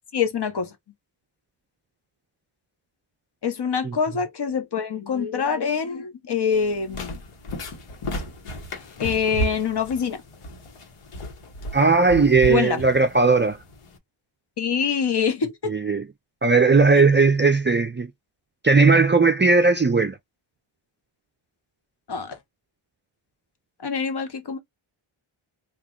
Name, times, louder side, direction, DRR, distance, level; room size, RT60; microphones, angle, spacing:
voice 1, 0.1-0.7 3.4-7.2 9.0-10.2 12.5-12.8 14.6-15.7 22.1-22.4 23.8-24.6, left 6 dB, 50° left, 0.9 m, -25 dB
sound 1, 6.5-14.0, equal, 90° left, 1.2 m, -34 dB
voice 2, 11.7-13.6 15.7-16.1 16.4-18.1 18.6-20.2, right 4 dB, 25° right, 0.4 m, -17 dB
3.0 x 2.4 x 3.7 m
wide cardioid pair, 105°, 50 cm